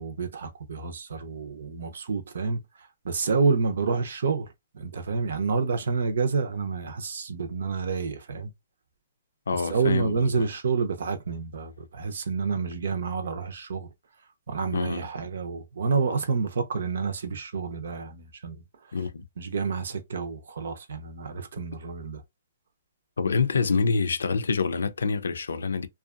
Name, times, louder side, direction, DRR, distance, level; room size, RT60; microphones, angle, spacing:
voice 1, 0.0-2.6 3.0-4.5 4.7-8.5 9.7-13.9 14.5-18.6 19.4-22.2, right 5 dB, 70° right, 0.7 m, -28 dB
voice 2, 9.5-10.5 14.7-15.1 18.9-19.2 23.2-25.9, left 4 dB, 90° left, 0.4 m, -26 dB
2.7 x 2.3 x 2.4 m
hypercardioid pair, 155°, 0 cm